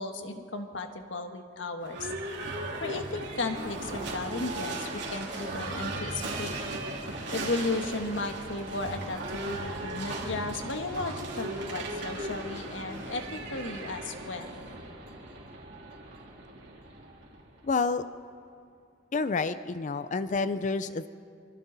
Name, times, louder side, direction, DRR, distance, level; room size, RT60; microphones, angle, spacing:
voice 1, 0.0-2.1 2.8-6.6 7.3-14.5, left 2 dB, 85° left, 5 dB, 1.5 m, -35 dB
Livestock farm animals working animals / Bell, 1.8-17.7, right 2 dB, 65° right, 3.6 m, -37 dB
voice 2, 17.6-18.0 19.1-21.1, left 4 dB, 40° left, 12 dB, 0.5 m, -29 dB
26.0 x 25.0 x 4.0 m, 2.5 s
head